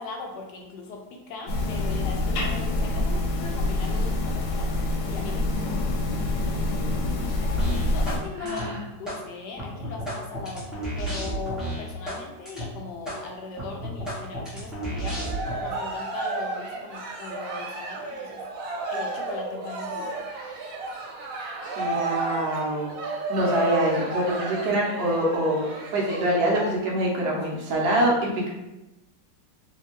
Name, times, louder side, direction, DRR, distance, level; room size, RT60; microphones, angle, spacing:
voice 1, 0.0-4.8 5.1-6.3 7.7-10.7 11.0-15.3 15.6-18.4 18.9-20.2, left 4 dB, 75° left, 1 dB, 1.1 m, -39 dB
sound 1, 1.5-8.2, left 2 dB, 90° left, 1.3 m, -26 dB
sound 2, 7.6-8.2 8.5-9.2 9.6-12.2 12.5-12.7 13.1-13.2 13.6-15.6, right 1 dB, ahead, 0.6 m, -32 dB
voice 2, 8.4-8.8 21.8-22.9 23.3-25.6 25.9-28.5, right 1 dB, 70° right, -3 dB, 1.3 m, -25 dB
Cheering, 14.9-26.7, right 2 dB, 85° right, 1.5 m, -32 dB
3.3 x 2.7 x 2.9 m, 0.99 s
omnidirectional pair, 2.0 m